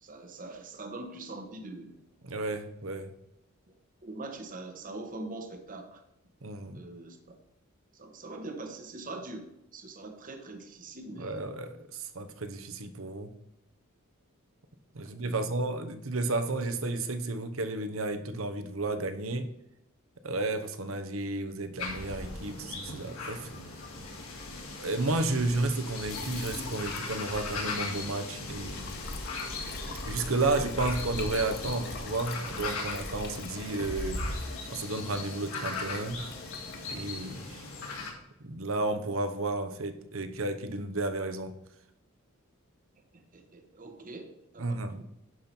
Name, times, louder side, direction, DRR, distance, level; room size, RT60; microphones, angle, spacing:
voice 1, 0.0-2.0 4.0-6.0 6.7-7.4 7.9-11.4 15.2-15.9 43.1-45.1, right 2 dB, 40° right, 6 dB, 1.1 m, -43 dB
voice 2, 2.2-3.1 6.4-6.8 11.2-13.3 14.9-19.5 20.2-23.5 24.7-28.9 30.0-34.3 34.7-36.2 36.9-37.6 38.4-41.5 44.6-45.0, right 2 dB, 65° right, 8 dB, 1.0 m, -32 dB
sound 1, 21.8-38.1, left 2 dB, 70° left, 3.1 m, -38 dB
sound 2, 26.1-37.0, left 5 dB, 50° left, 0.9 m, -46 dB
11.0 x 5.7 x 4.5 m, 0.82 s
head